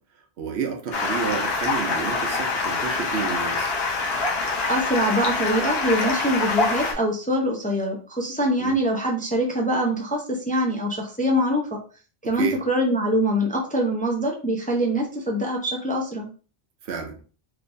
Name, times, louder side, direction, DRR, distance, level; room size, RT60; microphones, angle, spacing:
voice 1, 0.4-3.7 8.6-8.7 12.2-12.6 16.8-17.2, right 6 dB, 80° right, 2 dB, 1.0 m, -30 dB
Stream, 0.9-6.9, left 3 dB, 70° left, 1.0 m, -25 dB
voice 2, 4.7-11.8 12.2-16.3, equal, 10° left, 0 dB, 0.4 m, -24 dB
3.3 x 2.9 x 2.6 m, 0.38 s
omnidirectional pair, 1.1 m